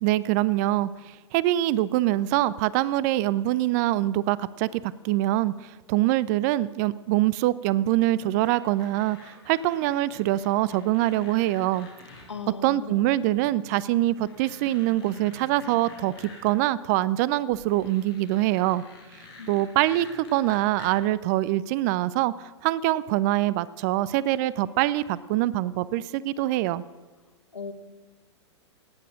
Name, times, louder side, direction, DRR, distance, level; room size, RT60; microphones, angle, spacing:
voice 1, 0.0-11.9 12.6-18.8 19.5-26.8, right 15 dB, 35° right, 20 dB, 0.4 m, -24 dB
sound 1, 8.4-12.3 13.4-13.5 14.0-16.6 17.5-20.9, left 3 dB, 55° left, 4.7 m, -48 dB
voice 2, 12.3-13.2 19.4-19.6 27.5-27.7, left 5 dB, 75° left, 8 dB, 1.6 m, -38 dB
17.0 x 9.2 x 6.3 m, 1.3 s
figure-of-eight pair, 105°, 15 cm